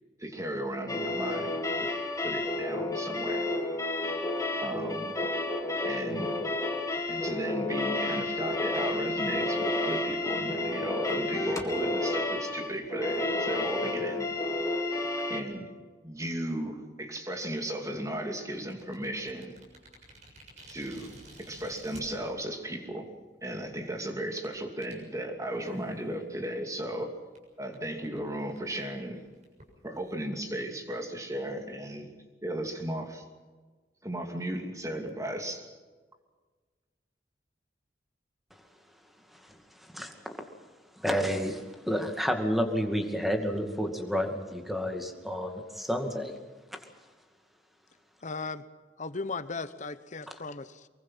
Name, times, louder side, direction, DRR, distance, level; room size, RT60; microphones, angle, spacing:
voice 1, 0.2-1.9 2.2-3.5 4.6-5.2 5.8-6.3 7.1-14.3 15.3-15.7 16.0-19.6 20.7-23.1 23.4-27.1 27.6-29.2 29.8-32.1 32.4-33.2 34.0-35.7, right 1 dB, 20° right, 4 dB, 2.6 m, -35 dB
sound 1, 0.9-15.4, left 2 dB, 20° left, 2.3 m, -31 dB
sound 2, 18.5-22.0 22.8-22.9 23.5-23.7 24.4-24.5 24.8-25.0 25.6-26.0 26.4-26.5 26.8-26.9 27.4-27.5 27.7-27.8 28.0-28.2 28.5-30.1, right 1 dB, 40° right, 7.0 m, -52 dB
voice 2, 41.0-46.3 46.7-46.8, equal, ahead, 4 dB, 2.3 m, -30 dB
voice 3, 48.2-48.7 49.0-50.9, left 4 dB, 40° left, 13 dB, 1.1 m, -37 dB
24.0 x 22.5 x 5.8 m, 1.4 s
head